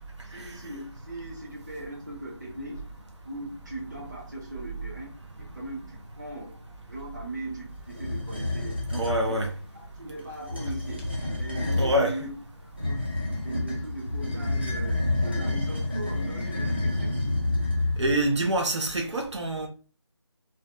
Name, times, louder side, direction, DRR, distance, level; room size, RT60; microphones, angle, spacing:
voice 1, 0.3-2.8 3.2-6.6 6.9-11.0 11.4-12.3 12.6-17.1, right 1 dB, 40° right, 0.9 m, -39 dB
sound 1, 7.9-9.2 10.4-12.0 12.8-18.3, left 2 dB, 25° right, 0.4 m, -29 dB
voice 2, 8.9-9.5 11.8-12.2 18.0-19.7, right 1 dB, 90° right, 0.6 m, -25 dB
2.5 x 2.2 x 2.4 m
figure-of-eight pair, 175°, 15 cm